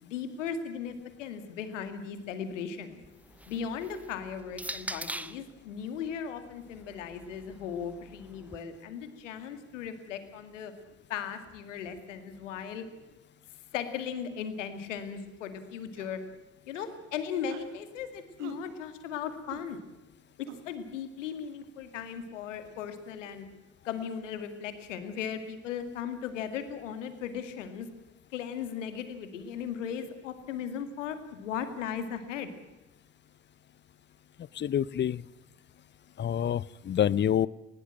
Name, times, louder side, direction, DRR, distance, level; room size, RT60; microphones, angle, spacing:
voice 1, 0.0-3.0 3.5-10.7 11.1-12.9 13.7-16.2 16.7-19.8 20.4-23.5 23.8-27.9 28.3-32.5, left 7 dB, 75° left, 10 dB, 2.2 m, -37 dB
sound 1, 3.0-5.5 6.4-8.6, right 1 dB, 5° right, 1.0 m, -43 dB
sound 2, 16.0-16.2 16.7-17.0 17.5-17.7 18.4-18.6 19.5-19.6 20.5-20.6, right 10 dB, 70° right, 2.0 m, -46 dB
voice 2, 34.6-35.2 36.2-37.5, left 10 dB, 30° left, 23 dB, 0.7 m, -27 dB
20.0 x 18.5 x 7.6 m, 1.1 s
figure-of-eight pair, 50°, 38 cm